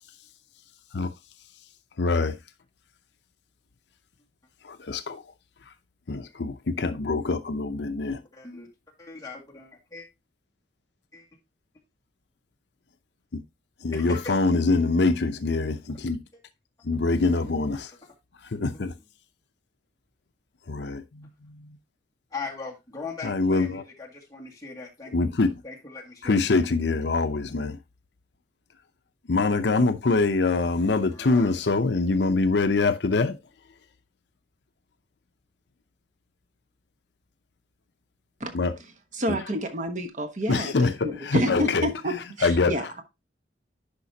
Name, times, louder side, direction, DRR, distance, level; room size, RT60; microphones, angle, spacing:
voice 1, 2.0-2.4 4.6-5.2 6.1-8.2 13.3-13.4 13.8-16.2 16.8-17.9 18.5-18.9 20.7-21.7 23.2-23.8 25.1-25.6 26.2-27.8 29.3-33.4 38.5-38.8 39.3-39.4 40.5-43.0, left 3 dB, 70° left, 0.7 m, -24 dB
voice 2, 8.3-8.7 9.0-10.1 11.1-11.3 13.9-14.3 18.7-18.9 22.3-25.1 25.6-26.4 31.1-31.5, left 4 dB, 20° left, 2.1 m, -39 dB
voice 3, 39.2-43.0, equal, 45° right, 1.2 m, -29 dB
10.5 x 5.1 x 2.8 m
head